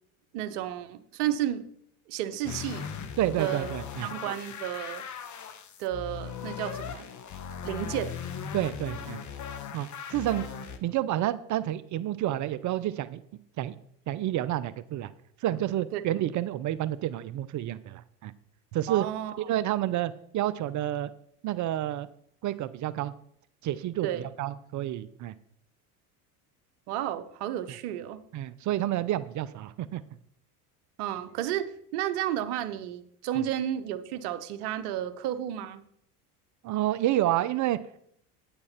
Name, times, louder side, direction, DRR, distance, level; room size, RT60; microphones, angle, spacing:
voice 1, 0.3-1.6 2.1-2.8 3.4-3.7 4.0-5.0 5.8-7.1 7.6-8.2 15.9-16.0 18.9-19.4 24.0-24.2 26.9-28.2 31.0-35.8, right 11 dB, 70° right, 11 dB, 1.1 m, -32 dB
sound 1, 2.4-10.8, left 7 dB, 40° left, 1.2 m, -38 dB
voice 2, 3.2-4.1 8.5-9.2 9.7-10.4 10.8-13.2 13.6-13.7 14.1-15.1 15.4-18.3 18.7-19.1 19.4-21.1 21.4-22.1 22.4-23.1 23.6-25.3 28.3-30.0 36.6-37.8, right 13 dB, 40° right, 16 dB, 0.5 m, -29 dB
9.8 x 8.7 x 4.3 m, 0.68 s
hypercardioid pair, 90°, 47 cm